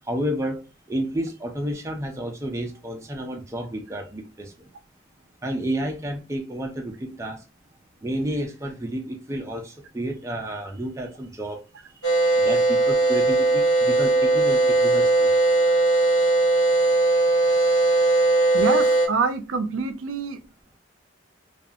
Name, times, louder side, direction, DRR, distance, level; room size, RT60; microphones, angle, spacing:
voice 1, 0.0-4.7 5.4-7.5 8.0-11.6 12.0-15.4 17.5-17.6 18.0-18.3, right 1 dB, 15° right, 0.4 m, -31 dB
sound 1, 12.0-19.1, right 2 dB, 75° left, 0.9 m, -19 dB
voice 2, 18.5-20.4, right 4 dB, 85° right, 0.4 m, -26 dB
2.6 x 2.3 x 2.5 m
head